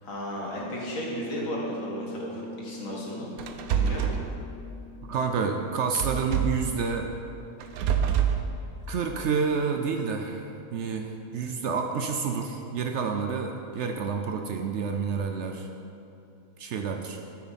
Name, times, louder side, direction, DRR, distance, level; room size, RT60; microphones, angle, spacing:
voice 1, 0.0-3.3 3.7-4.2, equal, 70° left, -3 dB, 2.0 m, -34 dB
Piano, 0.5-9.0, left 1 dB, 35° left, 1.3 m, -44 dB
sound 1, 3.4-4.2 6.0-6.7 7.6-8.4, right 8 dB, 90° right, 1.1 m, -25 dB
voice 2, 5.1-7.1 8.9-10.4 10.7-15.7 16.6-17.2, right 5 dB, 65° right, 4 dB, 0.8 m, -29 dB
9.2 x 8.6 x 4.1 m, 2.8 s
omnidirectional pair, 1.5 m